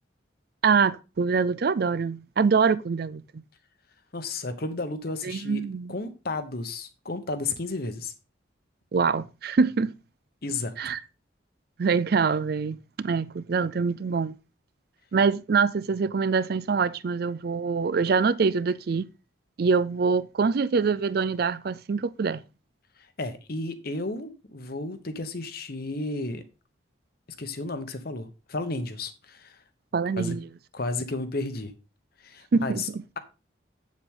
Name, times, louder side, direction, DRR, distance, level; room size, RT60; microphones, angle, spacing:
voice 1, 0.6-3.2 5.2-5.9 8.9-9.9 10.8-11.0 11.8-14.3 15.1-19.1 19.6-22.4 29.9-30.4 32.5-32.8, right 5 dB, 50° right, 0.4 m, -24 dB
voice 2, 4.1-5.6 5.9-8.1 10.4-10.7 23.2-26.4 27.4-29.6 30.2-30.4 30.7-31.7 32.2-32.9, left 2 dB, 50° left, 1.1 m, -32 dB
7.8 x 7.4 x 3.7 m
head